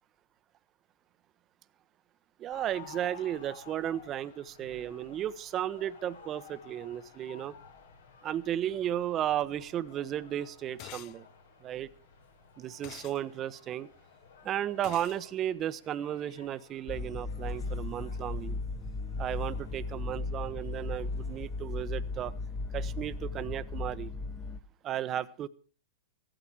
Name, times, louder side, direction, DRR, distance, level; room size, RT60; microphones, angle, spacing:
voice 1, 2.4-7.5 8.2-11.3 11.6-11.9 12.6-13.9 14.4-18.6 19.2-22.3 22.7-24.1 24.8-25.5, right 11 dB, 30° right, 15 dB, 1.0 m, -34 dB
sound 1, 2.5-21.4, left 6 dB, 85° left, 3.8 m, -55 dB
sound 2, 10.8-11.2 12.8-13.2 14.8-15.2, left 17 dB, 45° left, 0.6 m, -46 dB
sound 3, 16.9-24.6, left 3 dB, 25° left, 1.4 m, -36 dB
15.5 x 13.0 x 4.8 m, 0.39 s
hypercardioid pair, 125°, 0 cm